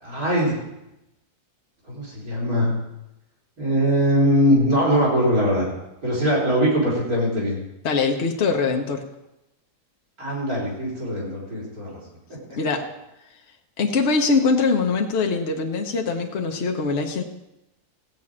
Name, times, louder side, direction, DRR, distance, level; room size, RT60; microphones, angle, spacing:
voice 1, 0.0-0.5 1.9-2.8 3.6-5.7 6.0-7.6 10.2-11.9, equal, 70° right, -4 dB, 4.6 m, -21 dB
voice 2, 7.8-9.0 12.6-12.8 13.8-17.2, left 4 dB, 50° left, 2 dB, 1.3 m, -22 dB
15.5 x 5.4 x 8.6 m, 0.91 s
omnidirectional pair, 1.6 m